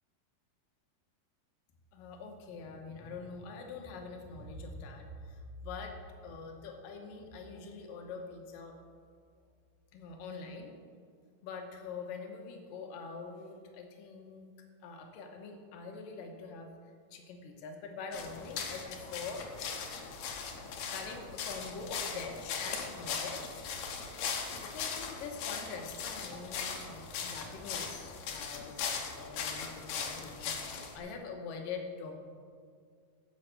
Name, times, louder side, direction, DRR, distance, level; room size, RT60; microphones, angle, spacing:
voice 1, 1.9-8.7 9.9-10.7 11.4-14.5 14.8-16.7 17.1-19.5 20.9-23.8 24.6-32.2, left 4 dB, 85° left, 3 dB, 2.7 m, -44 dB
sound 1, 18.1-31.0, left 6 dB, 65° left, 2.1 m, -39 dB
10.5 x 7.3 x 6.5 m, 2.1 s
omnidirectional pair, 3.9 m